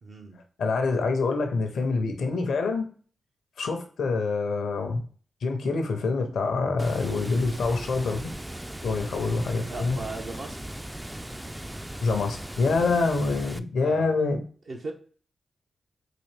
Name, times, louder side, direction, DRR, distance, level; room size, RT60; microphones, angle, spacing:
voice 1, 0.0-0.4 9.7-10.6 13.8-14.1 14.7-14.9, right 3 dB, 65° right, 0 dB, 0.7 m, -37 dB
voice 2, 0.6-2.9 3.6-5.0 5.4-8.3 8.8-10.0 12.0-14.4, left 3 dB, 80° left, 5 dB, 0.7 m, -26 dB
Water, 6.8-13.6, right 1 dB, 10° right, 0.3 m, -38 dB
3.9 x 2.6 x 3.2 m, 0.42 s
supercardioid pair, 40°, 0 cm